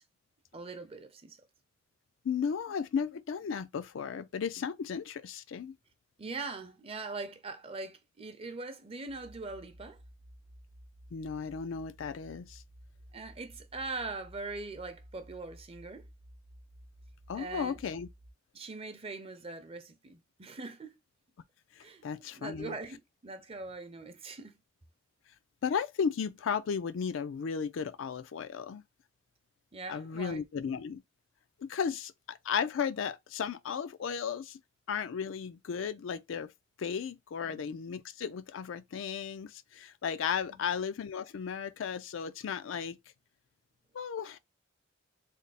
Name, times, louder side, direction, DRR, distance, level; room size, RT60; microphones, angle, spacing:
voice 1, 0.5-1.4 6.2-10.0 13.1-16.1 17.4-17.8 18.5-21.0 21.8-22.0 22.3-24.5 29.7-30.5 37.4-37.6 40.5-40.7, right 3 dB, 30° right, 0.6 m, -42 dB
voice 2, 2.2-5.8 11.1-12.6 17.3-18.1 21.8-22.7 25.6-28.8 29.9-31.0 31.6-34.6 34.9-36.5 36.8-43.0 43.9-44.4, left 6 dB, 75° left, 0.4 m, -35 dB
sound 1, 9.1-18.3, equal, 85° right, 0.7 m, -55 dB
3.3 x 2.0 x 4.0 m
head